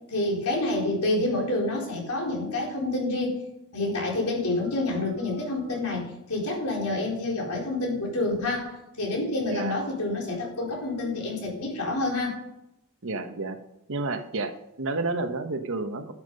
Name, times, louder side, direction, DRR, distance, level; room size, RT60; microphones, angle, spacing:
voice 1, 0.1-3.4 3.7-12.4, left 2 dB, 90° left, -1 dB, 4.1 m, -28 dB
voice 2, 13.0-13.6 13.9-16.1, right 3 dB, 65° right, 7 dB, 1.2 m, -30 dB
12.0 x 7.5 x 5.3 m, 0.87 s
head